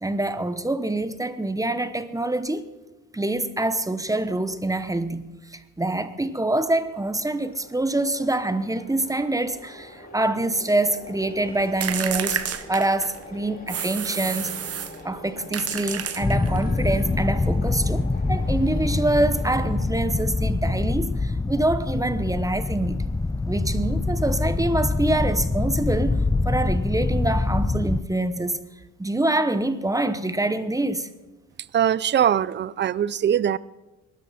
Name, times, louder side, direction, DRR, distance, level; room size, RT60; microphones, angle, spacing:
voice 1, 0.0-2.7 3.1-5.3 5.5-14.7 15.0-18.0 18.3-23.1 23.5-26.2 26.4-28.6 29.0-31.1, right 2 dB, 10° right, 1.0 m, -25 dB
sound 1, 6.3-19.9, left 1 dB, 30° left, 2.9 m, -43 dB
sound 2, 11.8-13.2 13.7-15.0 15.5-16.6, right 9 dB, 50° right, 1.1 m, -30 dB
sound 3, 16.2-28.0, left 3 dB, 10° left, 0.6 m, -25 dB
voice 2, 31.7-33.6, right 9 dB, 35° right, 0.5 m, -21 dB
21.5 x 12.5 x 4.3 m
cardioid pair, 90°, 30 cm